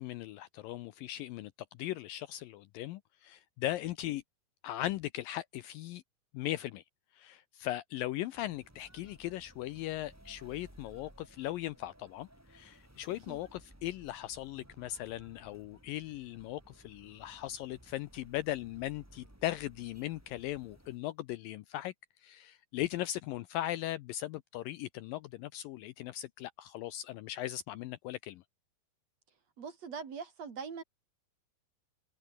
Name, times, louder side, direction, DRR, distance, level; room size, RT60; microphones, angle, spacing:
voice 1, 0.0-1.5 1.8-4.2 4.6-6.0 6.3-6.8 7.1-21.9 22.2-28.4, left 14 dB, 75° left, 2.2 m, -38 dB
sound 1, 8.3-21.0, right 1 dB, 5° right, 3.1 m, -59 dB
voice 2, 29.6-30.8, right 5 dB, 45° right, 3.5 m, -42 dB
omnidirectional pair, 4.5 m